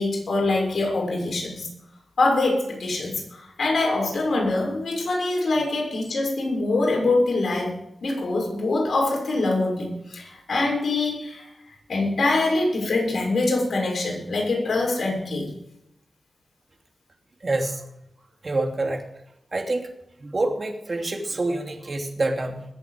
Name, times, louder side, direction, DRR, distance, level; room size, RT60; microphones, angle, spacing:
voice 1, 0.0-1.7 2.2-11.5 11.9-15.5, left 2 dB, 70° left, -1 dB, 6.5 m, -24 dB
voice 2, 17.4-17.8 18.4-19.0 19.5-19.9 20.2-22.6, right 2 dB, 45° right, 3 dB, 2.8 m, -26 dB
21.0 x 8.4 x 5.2 m, 0.82 s
cardioid pair, 65°, 0 cm